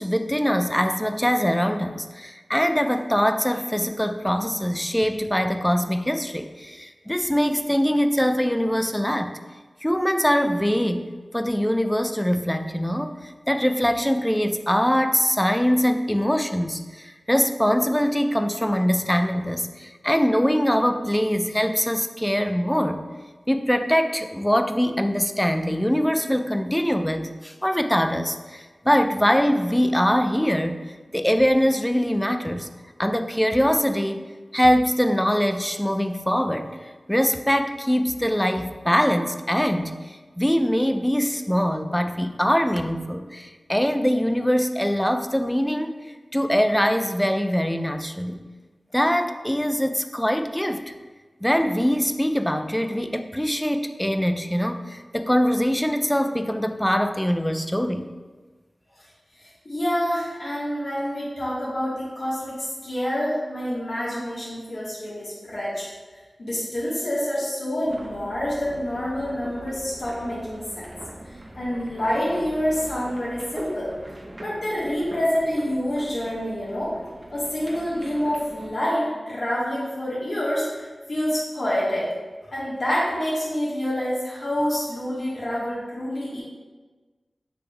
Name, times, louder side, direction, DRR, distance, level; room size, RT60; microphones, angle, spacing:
voice 1, 0.0-9.3 9.8-11.1 11.3-23.0 23.5-30.8 31.1-32.7 33.0-34.3 34.5-36.8 37.1-40.0 40.4-48.4 48.9-50.9 51.4-58.0, equal, 10° left, 8 dB, 0.3 m, -23 dB
voice 2, 59.4-65.8 66.4-71.0 71.2-73.9 74.4-76.9 77.3-82.1 82.4-86.4, equal, 75° left, -9 dB, 1.4 m, -27 dB
sound 1, 67.8-78.7, right 1 dB, 40° right, 0.6 m, -42 dB
6.9 x 3.2 x 2.3 m, 1.3 s
cardioid pair, 50°, 0 cm